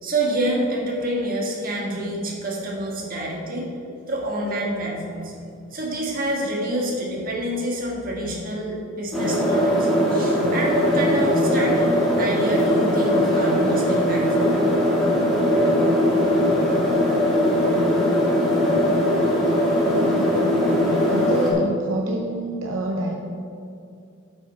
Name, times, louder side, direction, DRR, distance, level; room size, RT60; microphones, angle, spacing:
voice 1, 0.0-3.6 4.1-5.4 5.7-14.8 16.5-16.7, right 1 dB, 45° right, -3 dB, 1.7 m, -27 dB
sound 1, 9.1-21.5, equal, ahead, 1.9 m, -20 dB
voice 2, 19.9-20.5 21.1-23.1, right 2 dB, 75° right, 1 dB, 0.7 m, -27 dB
8.0 x 5.7 x 5.7 m, 2.5 s
head